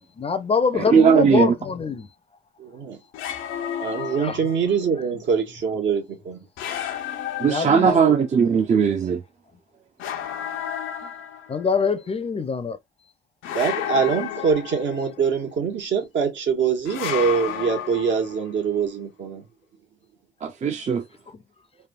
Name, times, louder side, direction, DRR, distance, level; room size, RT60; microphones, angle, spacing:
voice 1, 0.2-2.1 4.1-4.7 7.4-8.2 11.5-12.8 14.4-14.5 14.9-15.2 21.3-21.4, left 5 dB, 30° left, 0.5 m, -25 dB
sound 1, 0.8-1.4 3.1-4.8 6.6-8.3 10.0-11.7 13.4-15.2 16.9-18.5, left 9 dB, 90° left, 0.6 m, -32 dB
voice 2, 0.9-1.5 7.4-9.2 20.4-21.0, right 6 dB, 35° right, 0.5 m, -18 dB
voice 3, 2.6-3.0 3.8-6.4 13.5-19.4, right 6 dB, 70° right, 1.1 m, -24 dB
3.3 x 2.2 x 2.3 m
cardioid pair, 90°, 20 cm